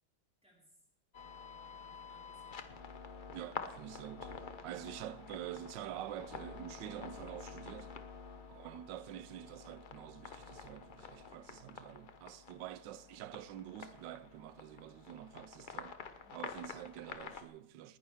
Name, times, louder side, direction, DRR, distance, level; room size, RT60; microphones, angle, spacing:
voice 1, 0.4-0.9 1.7-2.7 8.3-8.8 16.2-16.5, equal, 5° right, 3.9 m, -68 dB
sound 1, 1.1-17.5, left 5 dB, 50° left, 0.5 m, -49 dB
voice 2, 3.3-7.9 8.5-16.0 16.3-18.0, right 12 dB, 85° right, 1.3 m, -47 dB
19.5 x 10.0 x 3.4 m
omnidirectional pair, 1.9 m